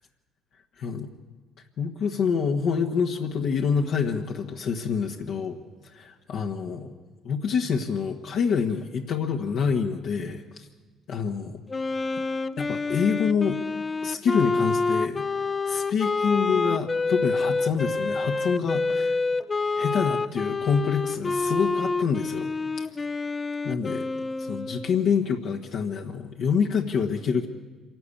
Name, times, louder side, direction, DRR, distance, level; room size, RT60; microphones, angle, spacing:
voice 1, 0.8-1.1 1.8-5.5 5.9-6.9 7.3-10.7 11.1-11.6 12.6-13.6 14.0-15.2 15.6-19.2 19.8-22.5 23.6-24.1 24.4-27.5, left 6 dB, 65° left, 2 dB, 1.4 m, -26 dB
Wind instrument woodwind instrument, 11.7-25.1, left 3 dB, 30° left, 0.6 m, -28 dB
26.0 x 12.0 x 8.6 m, 1.3 s
supercardioid pair, 70°, 0 cm